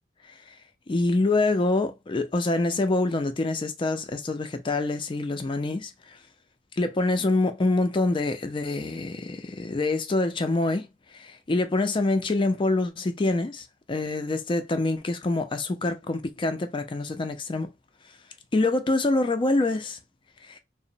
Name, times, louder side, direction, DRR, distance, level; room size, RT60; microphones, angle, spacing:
voice 1, 0.9-5.9 6.8-10.9 11.1-17.7 18.5-20.0 20.5-20.6, left 2 dB, 30° left, 0.4 m, -25 dB
2.9 x 2.0 x 2.5 m
head